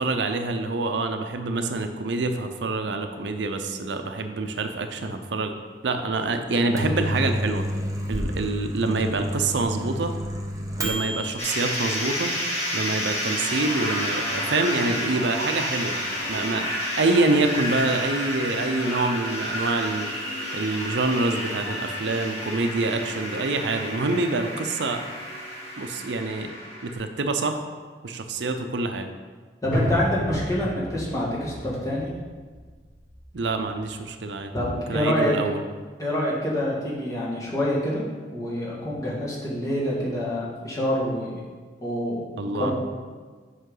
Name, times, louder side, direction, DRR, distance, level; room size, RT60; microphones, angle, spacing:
voice 1, 0.0-5.5 5.8-7.7 8.1-10.1 10.8-12.3 12.7-16.0 16.3-16.7 16.9-20.1 20.5-25.1 25.8-26.5 26.8-27.6 28.0-29.1 33.3-34.5 34.9-35.6 42.4-42.7, right 3 dB, 80° right, 7 dB, 0.6 m, -26 dB
Microwave oven, 6.5-11.3, equal, 20° right, 0.8 m, -30 dB
sound 1, 11.4-26.9, equal, 35° left, 1.8 m, -30 dB
voice 2, 29.6-32.1 34.5-35.3 36.0-38.0 38.3-41.4 41.8-42.2 42.6-42.7, left 1 dB, 20° left, -6 dB, 1.8 m, -26 dB
sound 2, 29.7-34.2 34.5-34.6, equal, 55° left, 1.8 m, -33 dB
8.1 x 5.7 x 3.9 m, 1.5 s
head